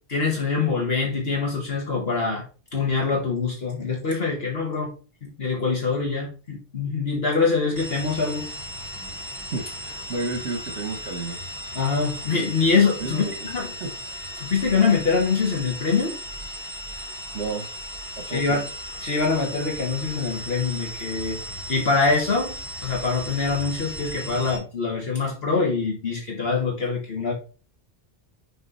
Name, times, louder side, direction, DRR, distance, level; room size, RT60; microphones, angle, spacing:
voice 1, 0.1-2.4 2.7-4.9 5.2-8.5 11.7-13.7 14.4-16.2 18.3-18.6 19.0-21.4 21.7-22.5 22.8-27.3, left 4 dB, 60° left, -1 dB, 1.8 m, -24 dB
sound 1, 7.8-24.6, equal, 15° left, 2.8 m, -36 dB
voice 2, 9.5-11.4 13.0-13.3 13.8-13.9 17.3-17.7 18.2-18.6, right 3 dB, 65° right, 5 dB, 1.4 m, -31 dB
6.1 x 3.8 x 5.5 m, 0.35 s
omnidirectional pair, 1.2 m